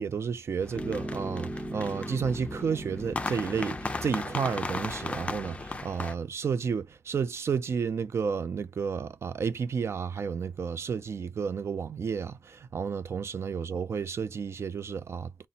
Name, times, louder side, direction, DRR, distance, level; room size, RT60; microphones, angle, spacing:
voice 1, 0.0-15.3, right 6 dB, 65° right, 0.4 m, -31 dB
sound 1, 0.6-6.1, left 3 dB, 25° left, 0.4 m, -37 dB
Piano, 0.7-5.8, right 1 dB, 5° right, 0.7 m, -39 dB
4.0 x 2.1 x 4.0 m
wide cardioid pair, 125°, 5 cm